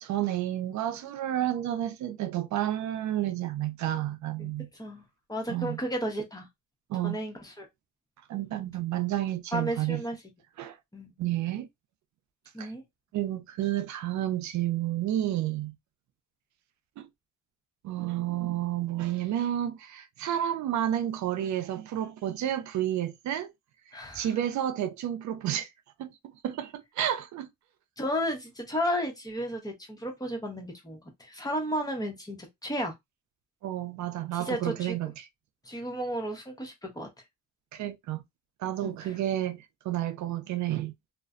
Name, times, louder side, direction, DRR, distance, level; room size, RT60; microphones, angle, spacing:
voice 1, 0.0-4.7 5.5-5.8 6.9-7.2 8.3-10.0 10.6-10.8 11.2-11.7 12.6-12.7 13.1-15.7 17.0-17.1 17.8-23.5 24.1-25.7 26.0-26.1 26.4-27.5 33.6-35.3 37.7-38.2 38.6-40.9, right 12 dB, 70° right, 0.5 m, -30 dB
voice 2, 5.3-6.5 7.0-7.7 9.5-10.2 10.9-11.1 12.5-12.8 23.9-24.3 28.0-32.9 34.3-35.0 35.6-37.1 38.8-39.2, equal, 10° left, 0.9 m, -33 dB
2.4 x 2.1 x 2.4 m
cardioid pair, 90°, 30 cm